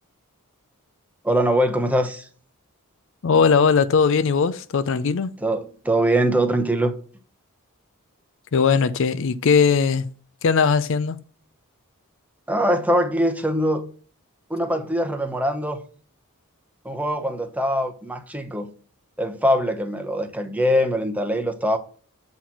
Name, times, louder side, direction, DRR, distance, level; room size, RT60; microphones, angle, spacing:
voice 1, 1.2-2.3 5.4-6.9 12.5-13.9 14.5-15.8 16.8-18.7 19.2-21.8, equal, 5° right, 0.8 m, -22 dB
voice 2, 3.2-5.3 8.5-10.1 10.4-11.2, left 5 dB, 60° left, 0.4 m, -19 dB
7.7 x 4.3 x 5.9 m
head